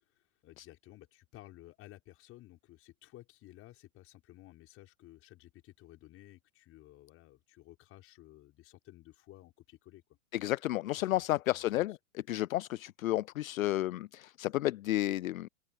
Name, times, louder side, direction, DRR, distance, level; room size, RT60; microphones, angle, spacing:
voice 1, 0.1-10.0 11.1-11.2 11.5-12.0, left 16 dB, 30° left, 6.1 m, -55 dB
voice 2, 10.3-12.0 12.3-15.5, left 15 dB, 70° left, 0.5 m, -32 dB
open air
hypercardioid pair, 120°, 43 cm